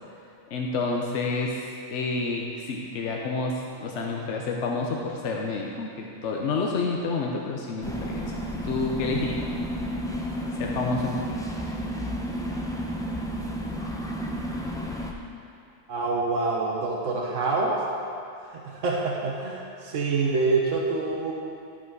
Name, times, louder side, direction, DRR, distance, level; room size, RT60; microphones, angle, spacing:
voice 1, 0.5-1.6 1.9-3.5 3.8-9.5 10.6-11.4, left 3 dB, 75° left, -1 dB, 1.1 m, -29 dB
sound 1, 7.8-15.1, equal, 5° left, 0.5 m, -31 dB
voice 2, 15.9-17.8 18.5-21.3, right 3 dB, 90° right, -2 dB, 1.2 m, -26 dB
12.0 x 5.7 x 4.6 m, 2.5 s
omnidirectional pair, 1.2 m